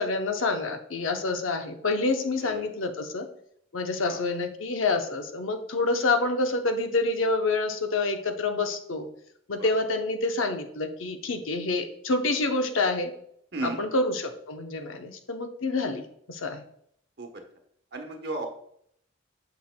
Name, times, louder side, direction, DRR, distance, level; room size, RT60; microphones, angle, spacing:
voice 1, 0.0-3.3 3.7-9.1 9.5-13.1 13.6-16.0 16.3-16.6, left 3 dB, 85° left, 6 dB, 0.7 m, -27 dB
voice 2, 17.9-18.5, right 3 dB, 55° right, 4 dB, 1.0 m, -34 dB
8.4 x 5.9 x 2.2 m, 0.69 s
head